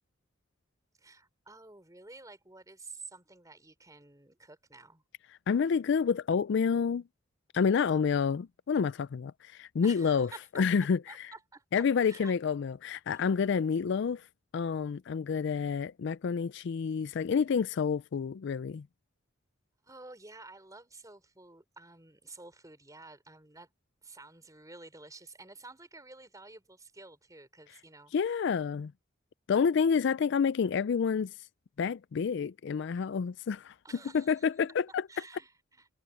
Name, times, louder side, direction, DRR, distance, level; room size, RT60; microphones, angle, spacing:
voice 1, 1.0-5.0 7.9-8.1 9.8-10.6 11.1-11.6 12.0-12.3 13.1-13.2 19.8-23.7 24.0-28.4 33.8-34.5 35.1-35.9, right 3 dB, 15° right, 5.4 m, -51 dB
voice 2, 5.5-7.0 7.5-10.3 10.6-11.3 11.7-14.2 14.5-18.9 28.1-28.9 29.5-31.3 31.8-33.7 34.1-35.0, left 6 dB, 60° left, 0.4 m, -28 dB
head